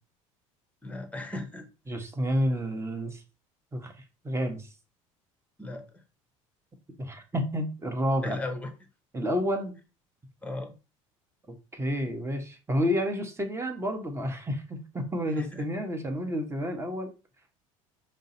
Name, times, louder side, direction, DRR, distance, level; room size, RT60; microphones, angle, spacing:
voice 1, 0.8-1.7 5.6-6.0 8.2-8.7 10.4-10.7 15.4-15.6, left 2 dB, 10° left, 1.1 m, -36 dB
voice 2, 1.9-3.2 3.7-3.9 4.2-4.7 7.0-8.4 9.1-9.8 11.7-17.1, equal, 15° right, 1.2 m, -30 dB
5.2 x 2.1 x 4.1 m
figure-of-eight pair, 65°, 18 cm